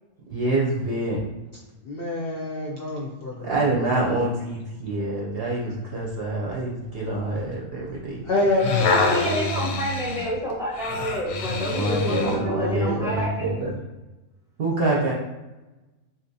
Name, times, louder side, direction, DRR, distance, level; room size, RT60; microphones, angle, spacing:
voice 1, 0.3-1.2 3.4-8.2 11.7-13.7 14.6-15.1, right 2 dB, 60° right, -4 dB, 0.7 m, -26 dB
voice 2, 1.8-3.9 8.2-9.8 11.7-13.0, left 2 dB, 60° left, -4 dB, 0.6 m, -28 dB
sound 1, 8.4-12.5 13.1-13.2, left 4 dB, 90° left, 1.1 m, -27 dB
voice 3, 8.9-13.5, equal, 5° right, -6 dB, 0.5 m, -28 dB
3.6 x 2.8 x 2.6 m, 1.1 s
omnidirectional pair, 1.5 m